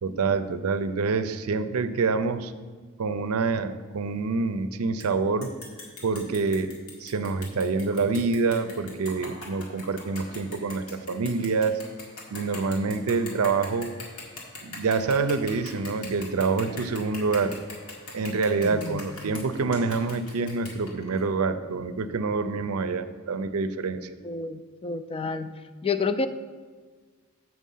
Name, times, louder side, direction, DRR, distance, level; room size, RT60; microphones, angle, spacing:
voice 1, 0.0-2.5 3.0-5.5 6.0-6.7 7.0-11.8 12.3-13.9 14.6-17.6 18.1-24.1, right 4 dB, 85° right, 11 dB, 0.5 m, -26 dB
sound 1, 5.0-5.1 5.4-21.2, left 3 dB, 90° left, 1.8 m, -42 dB
voice 2, 18.6-19.1 24.2-26.3, left 4 dB, 25° left, 11 dB, 0.3 m, -30 dB
7.4 x 6.1 x 5.5 m, 1.5 s
head